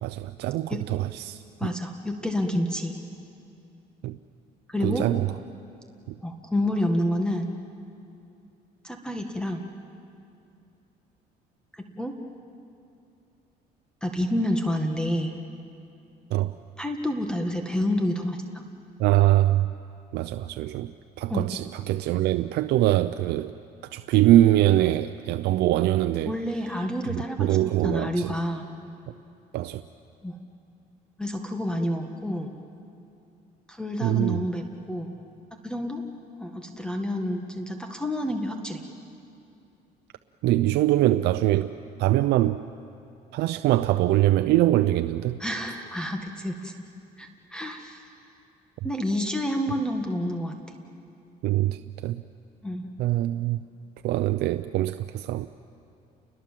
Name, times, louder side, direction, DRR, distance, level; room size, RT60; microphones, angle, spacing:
voice 1, 0.0-1.4 4.0-4.2 4.8-5.3 16.3-16.5 19.0-19.7 20.1-20.9 21.2-23.5 23.9-26.3 27.1-28.3 29.5-29.8 34.0-34.4 40.4-41.7 42.0-42.6 43.3-45.4 51.4-52.2 53.0-53.6 54.0-55.5, right 14 dB, 80° right, 10 dB, 0.6 m, -23 dB
voice 2, 1.6-2.9 4.7-5.1 6.2-7.5 8.8-9.7 11.7-12.1 14.0-15.3 16.8-18.6 21.3-21.5 26.3-27.6 27.8-28.7 30.2-30.4 31.2-32.5 33.7-35.1 35.6-36.0 36.4-38.8 45.4-46.7 47.2-48.0 48.8-50.6 52.6-52.9, left 1 dB, 5° left, 4 dB, 1.8 m, -29 dB
29.5 x 22.0 x 7.5 m, 2.7 s
cardioid pair, 110°, 17 cm